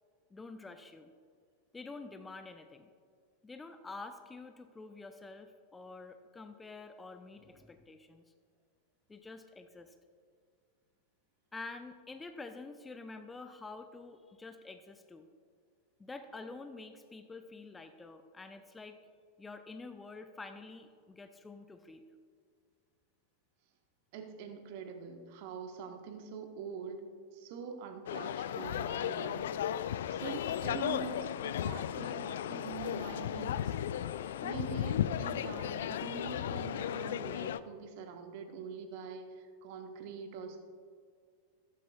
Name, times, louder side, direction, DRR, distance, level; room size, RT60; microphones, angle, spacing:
voice 1, 0.3-1.1 1.7-2.9 3.4-8.2 9.1-9.9 11.5-15.3 16.0-19.0 19.4-22.0, left 3 dB, 10° left, 8 dB, 0.6 m, -48 dB
voice 2, 24.1-27.0 27.3-29.5 30.1-33.7 34.4-40.6, right 6 dB, 50° right, 5 dB, 1.2 m, -44 dB
sound 1, 28.1-37.6, left 10 dB, 60° left, 0.3 m, -35 dB
14.0 x 13.0 x 2.4 m, 2.1 s
figure-of-eight pair, 90°, 0 cm